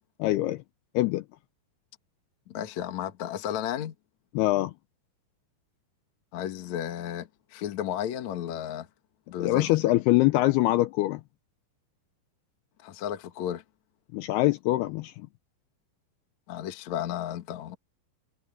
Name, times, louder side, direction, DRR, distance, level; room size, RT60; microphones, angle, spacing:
voice 1, 0.2-0.6 0.9-1.2 4.4-4.7 9.4-11.2 14.1-15.1, left 17 dB, 85° left, 2.4 m, -23 dB
voice 2, 2.5-3.9 6.3-8.9 9.3-9.8 12.8-13.6 16.5-17.8, left 10 dB, 65° left, 1.9 m, -33 dB
omnidirectional pair, 5.2 m